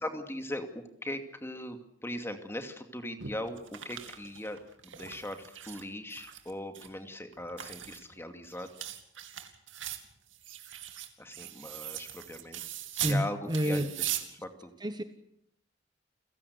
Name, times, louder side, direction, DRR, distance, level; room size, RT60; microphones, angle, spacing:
voice 1, 0.0-8.7 11.2-12.6 12.9-14.7, left 1 dB, 15° left, 7 dB, 2.3 m, -40 dB
sound 1, 3.2-5.8 6.1-6.9 7.3-13.2 13.5-14.2, right 11 dB, 80° right, 2.6 m, -40 dB
voice 2, 13.0-13.9 14.8-15.0, equal, 25° right, 10 dB, 1.2 m, -29 dB
29.0 x 16.5 x 8.0 m, 0.76 s
head